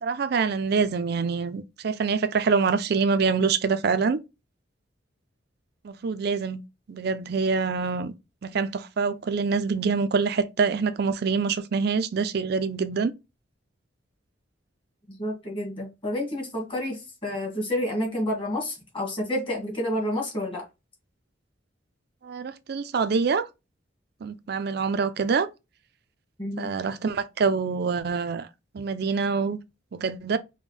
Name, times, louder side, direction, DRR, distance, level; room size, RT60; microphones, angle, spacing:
voice 1, 0.0-4.2 5.8-6.6 6.9-8.1 8.4-13.1 22.2-23.5 24.2-25.5 26.6-28.5 28.7-29.6 29.9-30.4, right 5 dB, 55° right, 0.4 m, -25 dB
voice 2, 15.1-20.7 26.4-26.7, left 1 dB, 25° left, 1.9 m, -29 dB
5.3 x 2.2 x 3.2 m
head